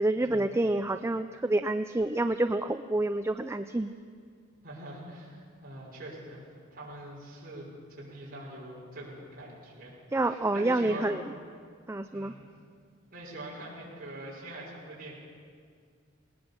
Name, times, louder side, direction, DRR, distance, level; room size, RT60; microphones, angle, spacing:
voice 1, 0.0-3.9 10.1-11.2 11.9-12.3, right 2 dB, 15° right, 9 dB, 0.4 m, -28 dB
voice 2, 4.6-9.9 10.3-11.2 12.1-12.5 13.1-15.1, right 1 dB, 45° right, -5 dB, 5.9 m, -43 dB
20.0 x 19.5 x 7.1 m, 2.1 s
head